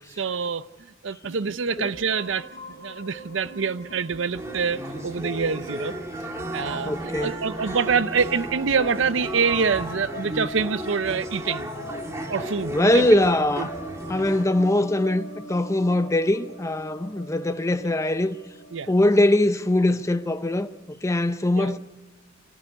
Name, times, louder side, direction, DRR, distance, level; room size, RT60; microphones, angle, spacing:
voice 1, 0.2-0.7 1.0-2.5 2.8-5.9 6.5-11.7 12.3-13.2 13.6-13.7 17.8-17.9 18.7-18.9 21.6-21.8, right 5 dB, 70° right, 0.6 m, -26 dB
MH-Arp, 1.2-20.8, equal, 40° left, 4.4 m, -41 dB
sound 1, 4.3-14.4, right 1 dB, 15° right, 1.8 m, -35 dB
voice 2, 6.8-7.4 12.7-13.7 14.1-18.4 18.9-20.7 21.0-21.8, left 1 dB, 15° left, 0.6 m, -22 dB
24.0 x 14.0 x 9.8 m
head